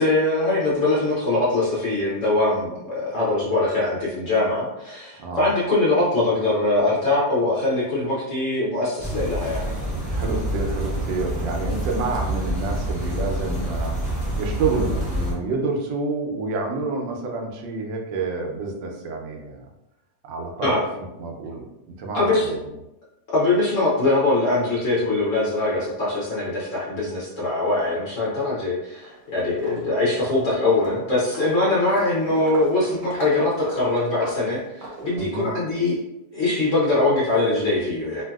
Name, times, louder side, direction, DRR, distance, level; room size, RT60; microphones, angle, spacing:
voice 1, 0.0-9.7 20.6-20.8 22.1-22.5 23.3-36.0 36.3-38.2, left 2 dB, 60° left, -7 dB, 0.9 m, -22 dB
sound 1, 9.0-15.3, right 1 dB, 15° right, 0.6 m, -27 dB
voice 2, 10.1-19.7 20.2-20.8 21.2-22.6 35.1-35.5, right 3 dB, 80° right, 1 dB, 1.3 m, -28 dB
Walk footsteps, 28.9-29.2 29.5-35.6, right 1 dB, 55° right, 1.1 m, -40 dB
3.1 x 2.7 x 2.3 m, 0.95 s
omnidirectional pair, 2.0 m